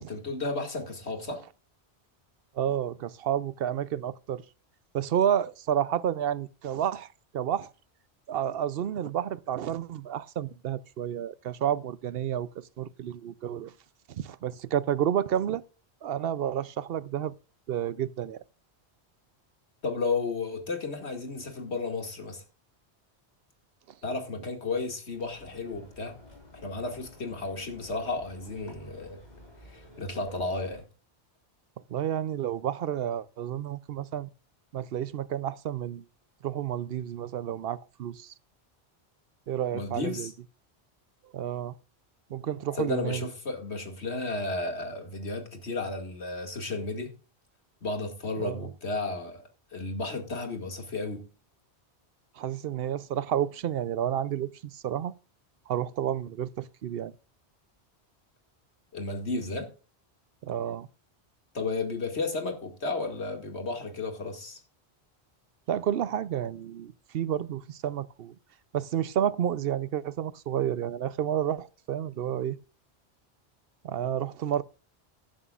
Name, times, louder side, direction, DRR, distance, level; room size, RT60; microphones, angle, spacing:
voice 1, 0.1-1.4 19.8-22.4 24.0-26.2 26.5-29.2 29.7-30.8 39.7-40.3 42.7-47.1 47.8-49.4 49.7-51.3 58.9-59.7 61.5-64.6, left 3 dB, 80° left, 2.5 m, -33 dB
voice 2, 2.5-4.4 4.9-7.7 8.3-13.7 14.1-15.6 16.0-17.3 17.7-18.4 31.9-34.3 34.7-36.0 36.4-38.3 39.5-40.3 41.3-41.7 42.3-43.3 48.4-48.7 52.4-55.1 55.7-57.1 60.4-60.9 65.7-68.3 68.7-72.6 73.8-74.6, right 10 dB, 65° right, 0.8 m, -30 dB
sound 1, 25.1-30.8, left 1 dB, 40° left, 4.4 m, -52 dB
14.0 x 11.0 x 2.4 m
omnidirectional pair, 1.1 m